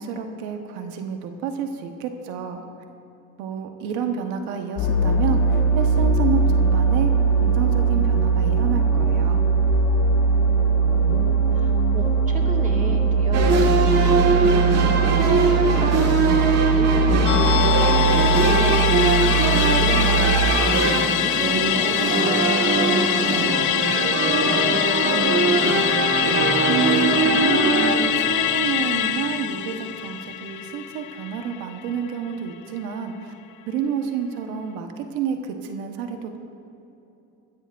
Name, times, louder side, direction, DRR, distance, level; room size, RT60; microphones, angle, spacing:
voice 1, 0.0-2.6 3.4-7.1 7.4-9.4 26.7-33.3 33.7-36.4, right 7 dB, 90° right, 5 dB, 1.3 m, -29 dB
sound 1, 4.8-20.4, right 4 dB, 75° left, 2.1 m, -20 dB
voice 2, 10.8-23.0 23.5-26.3, right 2 dB, 20° right, 0 dB, 1.9 m, -35 dB
sound 2, 13.3-28.0, right 4 dB, 45° right, 1.8 m, -22 dB
Musical instrument, 17.2-31.9 32.2-32.3, left 12 dB, 60° left, 0.8 m, -24 dB
21.0 x 15.0 x 2.6 m, 2.9 s
cardioid pair, 130°, 34 cm